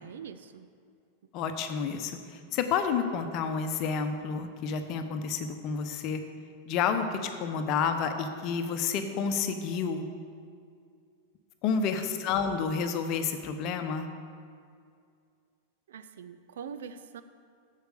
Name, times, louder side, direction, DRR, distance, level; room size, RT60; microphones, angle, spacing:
voice 1, 0.0-0.7 11.7-12.1 15.9-17.2, right 7 dB, 60° right, 11 dB, 0.5 m, -44 dB
voice 2, 1.3-6.2 6.7-10.1 11.6-14.1, left 6 dB, 40° left, 7 dB, 0.9 m, -30 dB
7.9 x 7.5 x 6.7 m, 2.3 s
figure-of-eight pair, 90°, 0 cm